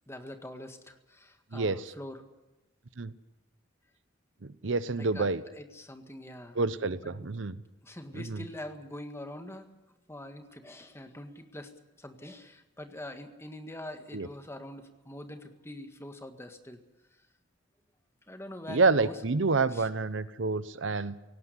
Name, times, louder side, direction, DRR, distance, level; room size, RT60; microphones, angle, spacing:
voice 1, 0.1-2.2 5.0-6.6 7.0-7.3 7.8-9.7 10.1-11.7 12.0-16.8 18.3-19.2 19.7-19.9, left 1 dB, 15° left, 7 dB, 1.7 m, -44 dB
voice 2, 4.4-5.4 6.5-7.6 8.1-8.4 14.1-14.3 18.7-21.2, right 3 dB, 70° right, 15 dB, 0.9 m, -28 dB
18.0 x 17.0 x 9.7 m, 1.1 s
head